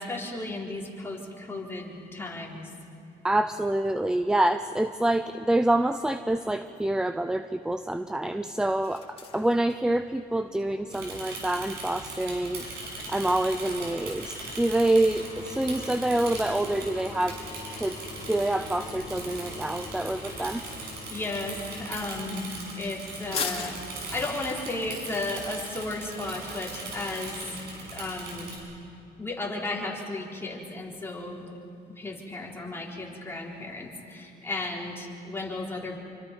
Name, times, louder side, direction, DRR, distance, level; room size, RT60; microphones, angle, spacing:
voice 1, 0.0-2.7 21.1-23.8 24.1-27.6 27.9-28.5 29.2-31.5 31.9-36.0, left 2 dB, 15° left, -3 dB, 4.3 m, -34 dB
voice 2, 3.2-12.6 13.1-17.4 17.7-18.0 18.3-20.6, right 1 dB, 5° right, 10 dB, 0.6 m, -26 dB
sound 1, 6.8-26.4, left 5 dB, 35° left, 2.8 m, -45 dB
Bicycle / Mechanisms, 10.9-28.6, right 2 dB, 70° right, 7.5 m, -40 dB
sound 2, 12.5-21.9 23.3-23.4, left 5 dB, 55° left, 3.4 m, -46 dB
27.5 x 25.0 x 5.4 m, 2.7 s
cardioid pair, 110°, 17 cm